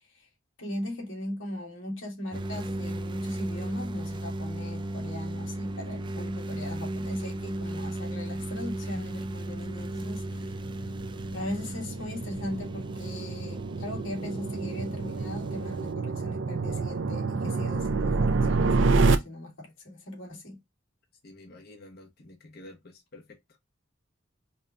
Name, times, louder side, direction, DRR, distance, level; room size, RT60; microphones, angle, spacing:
voice 1, 0.6-10.5 11.3-20.6, left 1 dB, 75° left, 1.9 m, -39 dB
sound 1, 2.3-15.9, right 1 dB, 25° right, 0.4 m, -36 dB
sound 2, 8.0-19.2, right 3 dB, 75° right, 0.6 m, -29 dB
voice 2, 21.2-23.6, left 1 dB, 55° left, 1.0 m, -50 dB
5.3 x 2.3 x 2.6 m
head